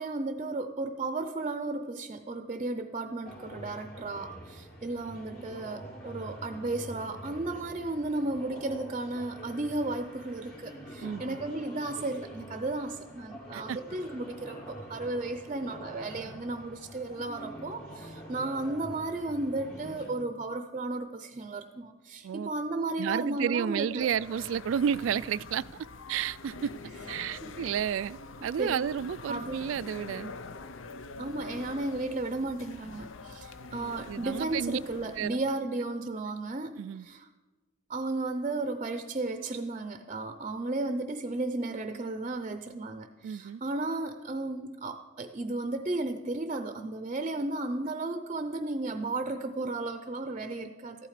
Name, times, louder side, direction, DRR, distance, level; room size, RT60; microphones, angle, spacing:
voice 1, 0.0-24.1 27.4-27.6 28.4-28.9 29.3-29.6 31.2-37.3 37.9-51.1, right 2 dB, 30° right, 8 dB, 0.5 m, -34 dB
sound 1, 3.2-20.1, right 1 dB, 55° left, 2.9 m, -46 dB
voice 2, 11.0-11.4 13.5-13.8 22.2-22.5 23.0-25.6 26.1-26.7 27.1-30.3 34.1-34.8 35.2-35.4 36.8-37.1 43.2-43.6, right 8 dB, 80° right, 19 dB, 0.3 m, -31 dB
sound 2, 23.9-35.5, left 3 dB, 80° left, 0.7 m, -45 dB
14.0 x 12.0 x 5.0 m, 1.2 s
head